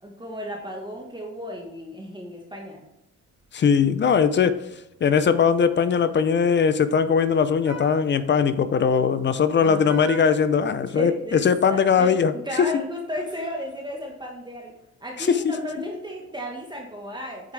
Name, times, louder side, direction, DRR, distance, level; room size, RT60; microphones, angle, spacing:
voice 1, 0.0-2.8 9.6-9.9 10.9-14.7 15.0-17.5, equal, 15° right, -1 dB, 1.3 m, -34 dB
Vehicle horn car horn honking, 3.3-11.5, right 4 dB, 70° right, 2.6 m, -45 dB
voice 2, 3.5-4.7 5.0-12.3 15.2-15.5, left 6 dB, 40° left, 13 dB, 0.5 m, -20 dB
8.2 x 5.0 x 3.3 m, 0.88 s
cardioid pair, 90°, 30 cm